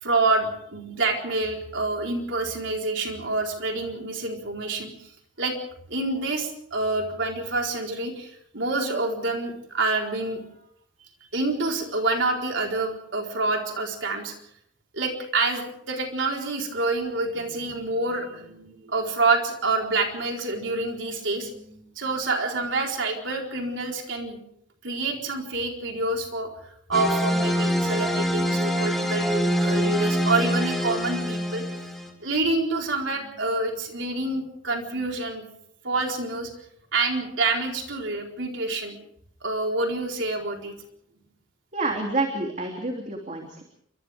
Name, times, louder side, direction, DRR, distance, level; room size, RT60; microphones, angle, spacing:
voice 1, 0.0-5.1 5.4-5.6 5.9-10.4 11.3-14.3 14.9-24.4 24.8-26.5 26.9-31.6 32.2-35.4 35.8-36.5 36.9-39.0 39.4-40.7, right 3 dB, 75° right, 1 dB, 4.4 m, -27 dB
sound 1, 26.9-32.1, equal, ahead, 2.8 m, -25 dB
voice 2, 41.7-43.6, right 2 dB, 40° right, 2 dB, 3.2 m, -28 dB
29.0 x 25.5 x 3.6 m, 0.68 s
head